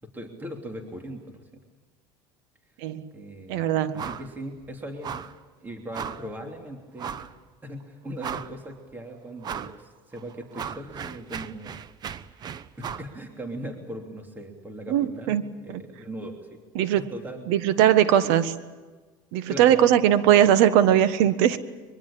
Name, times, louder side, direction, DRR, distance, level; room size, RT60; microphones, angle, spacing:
voice 1, 0.0-1.6 3.1-3.7 3.9-5.2 5.6-7.3 7.6-11.8 12.7-16.6 17.0-17.5 18.2-18.3 19.5-19.9, right 1 dB, 15° right, 3 dB, 3.1 m, -39 dB
voice 2, 3.5-4.0 14.9-15.4 15.7-15.8 16.7-17.1 17.5-18.5 19.3-21.6, right 11 dB, 75° right, 13 dB, 1.5 m, -20 dB
sound 1, 4.0-4.3 4.6-4.7 5.0-5.4 5.9-6.3 7.0-7.3 7.8-7.9 8.2-8.7 9.4-9.8 10.2-13.1, right 8 dB, 35° right, 1.0 m, -36 dB
23.5 x 23.0 x 8.7 m, 1.3 s
supercardioid pair, 115°, 11 cm